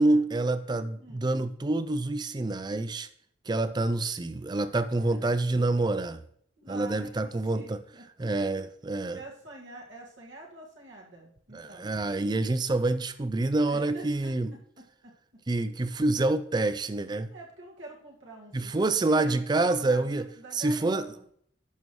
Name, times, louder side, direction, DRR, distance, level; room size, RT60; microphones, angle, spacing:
voice 1, 0.0-3.1 3.5-6.2 6.7-7.8 8.2-9.2 11.5-14.5 15.5-17.3 18.5-20.3 20.5-21.1, right 2 dB, 20° right, 0.4 m, -27 dB
voice 2, 4.9-5.9 6.6-7.3 7.6-8.0 9.1-11.9 13.7-14.3 15.0-15.1 17.3-21.2, right 2 dB, 75° right, 1.9 m, -46 dB
11.0 x 6.1 x 3.1 m
head